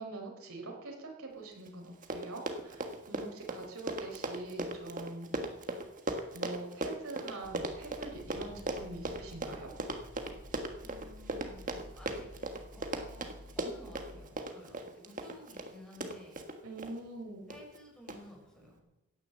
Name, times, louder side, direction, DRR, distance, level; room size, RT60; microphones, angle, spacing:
voice 1, 0.0-5.3 6.3-9.7 16.6-17.5, right 2 dB, 85° right, 1 dB, 4.4 m, -44 dB
Run, 1.7-1.8 1.9-16.9 17.5-17.8 18.1-18.2, right 2 dB, 35° right, 1.5 m, -38 dB
sound 1, 7.4-14.3, left 1 dB, 35° left, 2.0 m, -52 dB
voice 2, 10.8-12.3 12.7-13.3 13.6-16.4 17.5-18.9, left 1 dB, 5° left, -2 dB, 5.4 m, -54 dB
16.5 x 9.7 x 7.5 m, 0.95 s
head